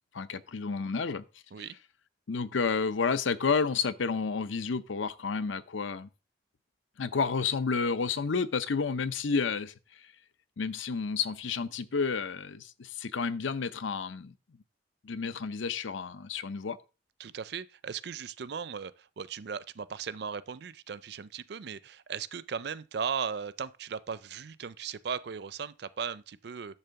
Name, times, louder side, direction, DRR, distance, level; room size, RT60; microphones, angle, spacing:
voice 1, 0.1-1.2 2.3-6.1 7.0-10.1 10.6-14.3 15.0-16.8, left 5 dB, 80° left, 0.6 m, -31 dB
voice 2, 17.2-26.8, right 6 dB, 60° right, 0.4 m, -37 dB
10.5 x 3.5 x 6.8 m
head